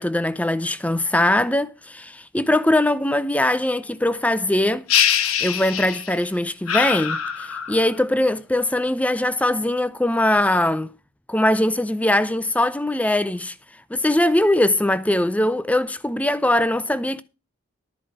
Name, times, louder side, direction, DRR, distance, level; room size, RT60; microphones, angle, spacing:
voice 1, 0.0-4.8 5.4-10.9 11.3-13.5 13.9-17.2, left 1 dB, 5° left, 0.5 m, -21 dB
sound 1, 4.9-6.2 6.7-7.9, left 9 dB, 90° left, 1.2 m, -23 dB
12.5 x 4.9 x 7.1 m
head